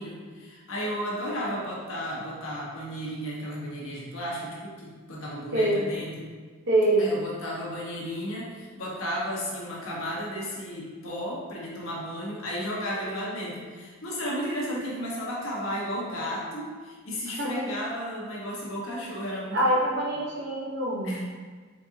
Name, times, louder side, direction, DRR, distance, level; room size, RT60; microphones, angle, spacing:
voice 1, 0.0-6.3 7.0-19.8 21.0-21.2, equal, 85° left, -4 dB, 1.2 m, -34 dB
voice 2, 6.7-7.1 17.4-17.7 19.5-21.2, right 1 dB, 55° right, -3 dB, 0.8 m, -24 dB
4.5 x 3.6 x 2.7 m, 1.5 s
head